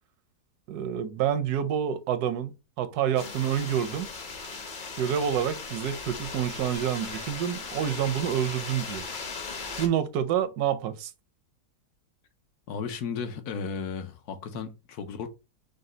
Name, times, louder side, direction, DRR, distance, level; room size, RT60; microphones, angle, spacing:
voice 1, 0.7-4.1 5.0-9.1 9.8-11.1, right 9 dB, 80° right, 1.1 m, -28 dB
sound 1, 3.2-9.9, left 4 dB, 45° left, 0.7 m, -38 dB
voice 2, 12.7-15.3, left 6 dB, 80° left, 1.2 m, -34 dB
5.2 x 2.2 x 3.8 m
omnidirectional pair, 1.6 m